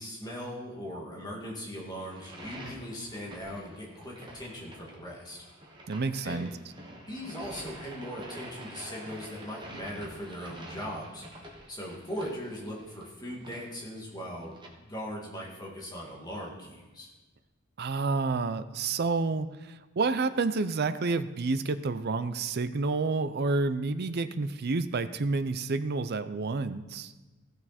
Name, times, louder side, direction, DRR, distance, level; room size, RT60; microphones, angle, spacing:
voice 1, 0.0-5.4 6.2-6.5 6.9-17.1, equal, 20° left, -3 dB, 2.0 m, -39 dB
sound 1, 2.0-14.7, right 1 dB, 20° right, 1.4 m, -47 dB
voice 2, 5.9-6.5 17.8-27.1, right 3 dB, 50° right, 11 dB, 0.5 m, -29 dB
15.5 x 6.7 x 4.2 m, 1.2 s
head